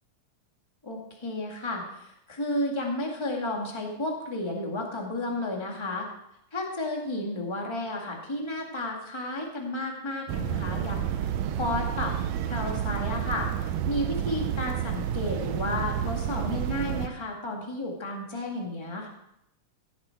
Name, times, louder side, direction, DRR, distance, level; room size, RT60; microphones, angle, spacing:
voice 1, 0.8-6.1 6.5-11.3 11.6-12.1 12.5-13.5 13.9-19.1, left 1 dB, 15° left, 0 dB, 0.8 m, -32 dB
sound 1, 10.3-17.1, right 10 dB, 85° right, 1.6 m, -30 dB
16.0 x 8.3 x 4.6 m, 0.80 s
omnidirectional pair, 4.0 m